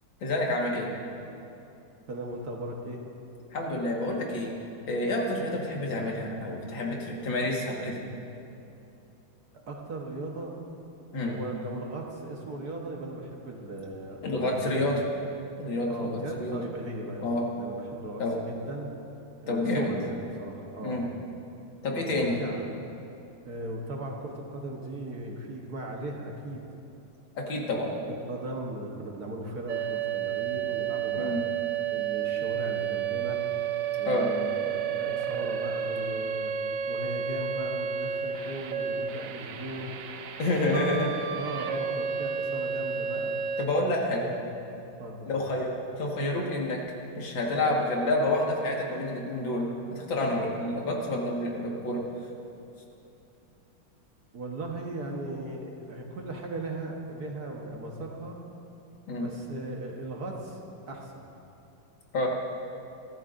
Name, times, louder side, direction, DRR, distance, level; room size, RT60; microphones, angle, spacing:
voice 1, 0.2-0.9 3.5-4.5 4.9-8.0 11.1-11.4 14.2-15.0 15.6-16.1 16.4-16.6 17.2-17.5 18.2-18.4 19.5-19.9 20.8-21.0 21.8-22.4 27.4-27.9 31.2-31.4 34.0-34.3 40.4-41.2 43.6-44.2 45.3-45.7 46.0-46.8 47.2-52.0 59.1-59.3 62.1-62.3, left 1 dB, 65° left, -2 dB, 2.4 m, -28 dB
voice 2, 2.1-3.0 5.5-5.6 9.7-10.5 11.2-14.9 15.9-18.9 19.4-21.1 21.9-22.7 23.4-26.6 28.3-31.4 31.9-33.4 34.0-36.5 36.9-40.0 40.5-43.4 44.1-44.4 45.0-45.3 54.3-58.4 59.1-61.3, right 1 dB, 55° right, 0 dB, 1.6 m, -38 dB
sound 1, 29.7-43.7, right 8 dB, 90° right, 0.7 m, -31 dB
23.0 x 14.0 x 2.6 m, 2.7 s
omnidirectional pair, 2.3 m